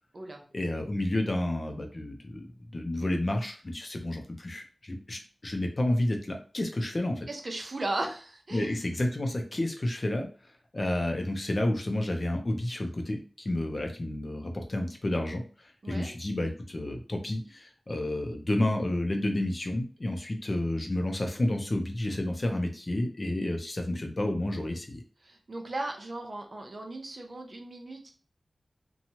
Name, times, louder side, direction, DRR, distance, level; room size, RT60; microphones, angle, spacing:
voice 1, 0.5-7.3 8.5-10.3 10.7-25.0, left 1 dB, 45° left, 3 dB, 0.6 m, -30 dB
voice 2, 7.3-8.7 15.8-16.1 25.2-28.1, right 2 dB, 55° right, 3 dB, 0.6 m, -36 dB
2.9 x 2.3 x 2.8 m, 0.39 s
wide cardioid pair, 55°, 0 cm